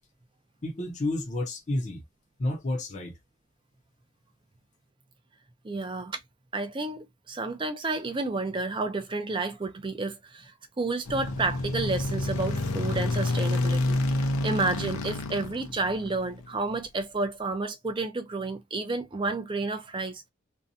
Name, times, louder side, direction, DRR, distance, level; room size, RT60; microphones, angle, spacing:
voice 1, 0.6-2.0 2.4-3.2, left 1 dB, 35° left, 0.6 m, -30 dB
voice 2, 5.6-6.2 6.5-20.2, right 3 dB, 25° right, 0.5 m, -31 dB
sound 1, 11.0-16.5, left 2 dB, 90° left, 0.5 m, -29 dB
2.6 x 2.2 x 2.5 m
head